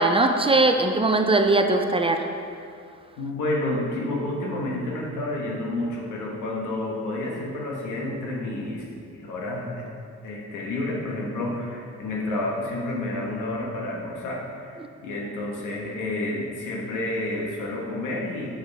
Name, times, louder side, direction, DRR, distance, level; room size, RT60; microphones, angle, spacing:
voice 1, 0.0-2.3, right 2 dB, 20° right, 5 dB, 0.5 m, -20 dB
voice 2, 3.2-8.8 9.1-9.9 10.2-18.5, left 2 dB, 90° left, -2 dB, 1.5 m, -30 dB
7.6 x 7.1 x 3.5 m, 2.4 s
cardioid pair, 90°, 30 cm